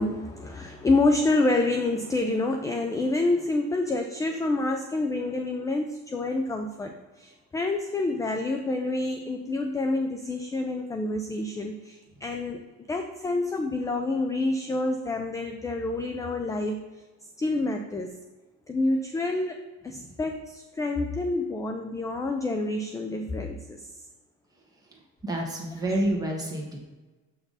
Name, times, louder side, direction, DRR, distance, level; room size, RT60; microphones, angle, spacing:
voice 1, 0.0-12.6 12.9-16.8 17.4-18.2 18.7-19.6 19.8-23.9, left 2 dB, 10° left, 5 dB, 0.3 m, -28 dB
voice 2, 25.2-26.8, right 1 dB, 10° right, -1 dB, 1.5 m, -28 dB
6.9 x 5.9 x 4.0 m, 1.2 s
cardioid pair, 150°, 32 cm